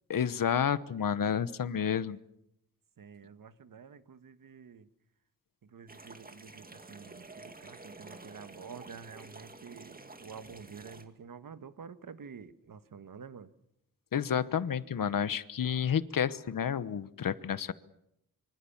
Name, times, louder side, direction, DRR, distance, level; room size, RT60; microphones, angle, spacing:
voice 1, 0.1-2.2 14.1-17.7, left 8 dB, 70° left, 15 dB, 1.1 m, -30 dB
voice 2, 3.0-4.9 5.6-13.5, right 6 dB, 70° right, 12 dB, 1.5 m, -49 dB
sound 1, 5.9-11.0, right 3 dB, 25° right, 2.2 m, -50 dB
26.0 x 25.0 x 7.2 m, 0.80 s
wide cardioid pair, 130°, 34 cm